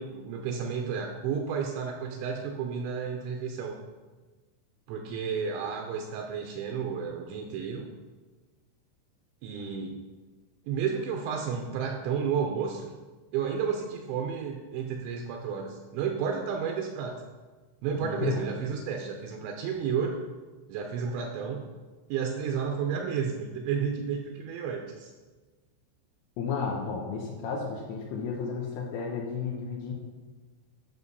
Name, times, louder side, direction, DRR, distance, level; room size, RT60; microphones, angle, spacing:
voice 1, 0.0-3.8 4.9-7.9 9.4-10.0 10.7-12.9 13.3-17.2 17.8-20.2 20.7-21.7 22.1-25.1, right 6 dB, 85° right, 2 dB, 2.8 m, -32 dB
voice 2, 17.9-18.5 26.4-29.9, left 5 dB, 85° left, -3 dB, 3.6 m, -33 dB
9.9 x 5.9 x 5.4 m, 1.3 s
omnidirectional pair, 5.8 m